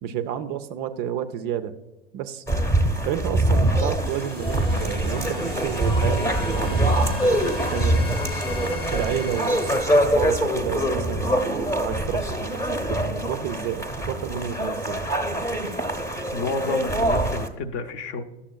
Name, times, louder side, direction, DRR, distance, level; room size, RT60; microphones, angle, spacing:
voice 1, 0.0-1.8 2.1-2.4 3.0-8.1 8.9-15.0, right 9 dB, 35° right, 10 dB, 0.4 m, -31 dB
sound 1, 2.5-17.5, right 1 dB, 10° left, 0.8 m, -24 dB
sound 2, 4.1-10.0, left 2 dB, 80° left, 1.6 m, -36 dB
voice 2, 16.3-18.2, left 4 dB, 40° left, 10 dB, 0.7 m, -30 dB
11.5 x 7.0 x 2.3 m, 1.1 s
figure-of-eight pair, 90°, 30 cm